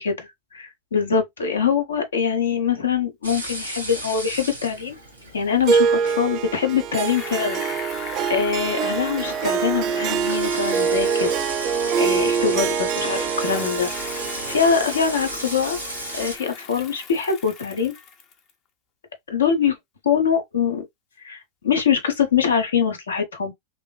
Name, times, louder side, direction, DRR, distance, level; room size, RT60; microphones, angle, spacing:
voice 1, 0.0-5.0 5.3-7.6 8.3-11.3 12.0-13.9 14.5-15.8 16.1-17.9 19.3-19.8 20.0-20.8 21.2-23.5, left 7 dB, 70° left, 0.8 m, -23 dB
sound 1, 3.2-16.4, right 1 dB, 85° left, 1.2 m, -35 dB
Harp, 5.7-16.2, right 6 dB, 35° right, 0.4 m, -25 dB
Bicycle, 7.0-12.8 13.3-18.5, left 6 dB, 35° left, 0.6 m, -40 dB
2.9 x 2.6 x 2.2 m
figure-of-eight pair, 90°, 0 cm